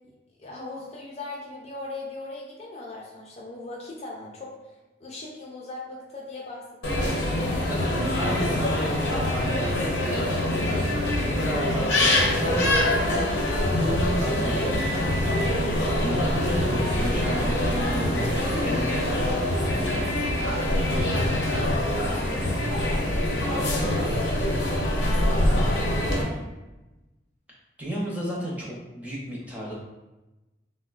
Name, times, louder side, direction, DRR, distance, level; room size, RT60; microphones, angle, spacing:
voice 1, 0.4-4.7 5.0-7.7 22.1-23.1 23.4-26.5, left 2 dB, 35° left, -2 dB, 0.4 m, -39 dB
sound 1, 6.8-26.2, left 1 dB, 80° left, 0.6 m, -24 dB
voice 2, 7.7-10.3 11.3-13.3 13.7-15.2 16.0-20.0 27.8-29.7, equal, 10° right, -5 dB, 0.6 m, -33 dB
3.6 x 2.1 x 2.3 m, 1.1 s
head